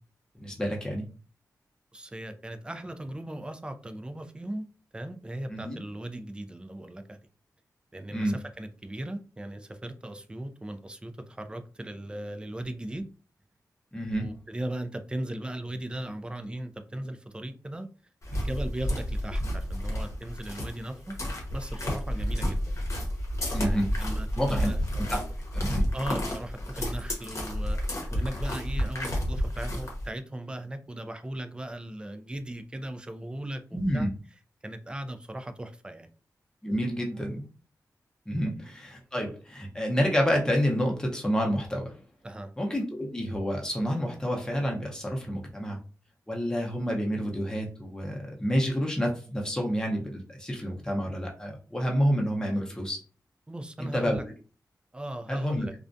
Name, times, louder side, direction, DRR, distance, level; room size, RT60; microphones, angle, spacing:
voice 1, 0.4-1.1 5.5-5.8 8.1-8.3 13.9-14.3 23.5-23.9 24.4-25.2 25.5-25.8 33.7-34.1 36.6-37.4 38.3-42.0 42.6-45.8 46.3-53.0 53.8-54.2 55.3-55.7, equal, 10° left, 0.7 m, -29 dB
voice 2, 1.9-4.7 4.9-7.2 7.9-13.1 14.2-17.9 18.3-21.2 21.5-22.7 23.6-24.8 25.9-27.8 28.1-34.1 34.6-36.1 42.2-42.5 53.5-54.2 54.9-55.7, right 1 dB, 15° right, 0.3 m, -38 dB
sound 1, 18.2-30.1, equal, 50° left, 0.8 m, -31 dB
2.4 x 2.1 x 2.5 m
wide cardioid pair, 75°, 7 cm